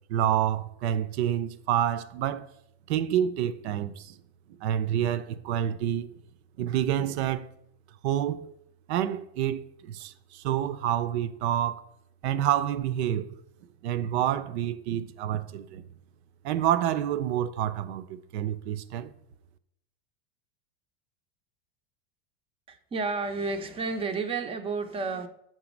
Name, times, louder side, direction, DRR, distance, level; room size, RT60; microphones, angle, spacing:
voice 1, 0.1-2.5 2.9-4.2 4.6-6.2 6.6-7.5 8.0-8.5 8.9-11.8 12.2-13.4 13.8-15.8 16.4-19.1, right 10 dB, 75° right, 0.6 m, -28 dB
voice 2, 22.7-25.3, right 4 dB, 15° right, 0.5 m, -31 dB
6.1 x 3.9 x 5.1 m
supercardioid pair, 135°, 33 cm